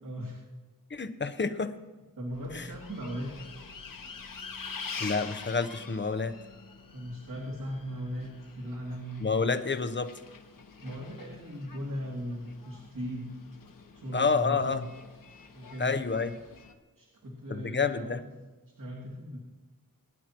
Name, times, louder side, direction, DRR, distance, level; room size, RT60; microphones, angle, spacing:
voice 1, 0.0-0.4 2.2-3.3 3.6-3.7 6.9-9.2 10.8-13.3 13.9-14.8 15.5-16.0 17.0-18.1 18.8-19.4, equal, 65° right, -3 dB, 2.7 m, -38 dB
voice 2, 0.9-1.7 2.5-2.6 5.0-6.4 9.2-10.1 14.1-14.8 15.8-16.3 17.5-18.2, left 4 dB, 35° left, 10 dB, 0.8 m, -29 dB
Bus, 2.3-16.7, left 5 dB, 70° left, 1.3 m, -46 dB
22.0 x 11.0 x 3.0 m, 1.3 s
wide cardioid pair, 105°, 35 cm